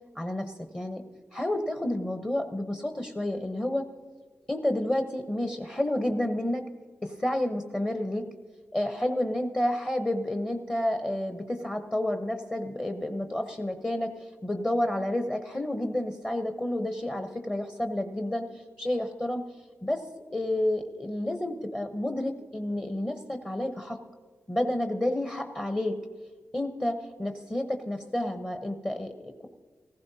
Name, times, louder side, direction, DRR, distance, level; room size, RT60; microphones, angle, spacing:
voice 1, 0.1-1.0 1.3-3.9 4.5-6.7 7.0-8.3 8.7-18.5 18.8-19.5 19.8-20.0 20.3-24.0 24.5-26.0 26.5-29.5, left 1 dB, 20° left, 5 dB, 0.9 m, -30 dB
15.0 x 15.0 x 2.8 m, 1.5 s
cardioid pair, 65°, 5 cm